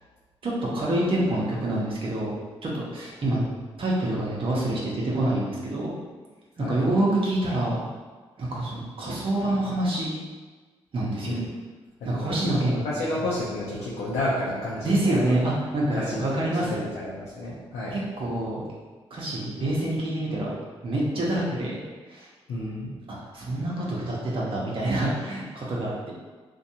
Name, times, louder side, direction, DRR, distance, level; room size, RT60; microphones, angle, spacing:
voice 1, 0.4-2.3 2.6-3.4 3.8-5.9 6.6-7.8 8.4-10.1 10.9-11.4 12.0-12.8 14.8-16.9 17.9-18.6 19.1-20.6 20.8-21.8 22.1-22.3 23.1-26.1, right 1 dB, 50° right, -5 dB, 0.7 m, -26 dB
voice 2, 12.0-15.3 15.9-18.0 22.5-23.0, left 1 dB, 80° left, -7 dB, 0.5 m, -31 dB
2.5 x 2.2 x 2.7 m, 1.4 s
supercardioid pair, 50°, 11 cm